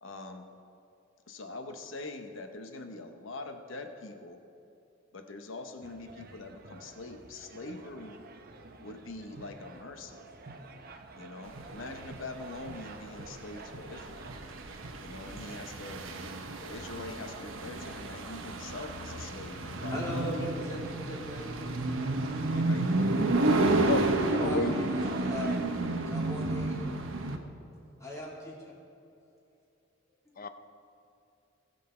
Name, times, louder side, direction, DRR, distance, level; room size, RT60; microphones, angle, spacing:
voice 1, 0.0-0.4 1.3-4.4 5.1-8.2 8.8-10.2 11.1-14.3 15.0-16.0 16.6-20.8 21.7-21.8 22.5-23.2, left 2 dB, 75° left, 6 dB, 0.9 m, -44 dB
sound 1, 5.8-25.6, right 3 dB, 50° right, 0.8 m, -48 dB
sound 2, 11.5-27.4, right 2 dB, 75° right, 1.0 m, -31 dB
voice 2, 19.9-21.6 24.3-26.8 28.0-28.7, left 1 dB, 15° left, -4 dB, 2.6 m, -39 dB
voice 3, 23.0-23.4 23.7-24.7 30.4-30.5, left 3 dB, 45° left, 10 dB, 0.6 m, -33 dB
18.5 x 6.5 x 4.4 m, 2.7 s
head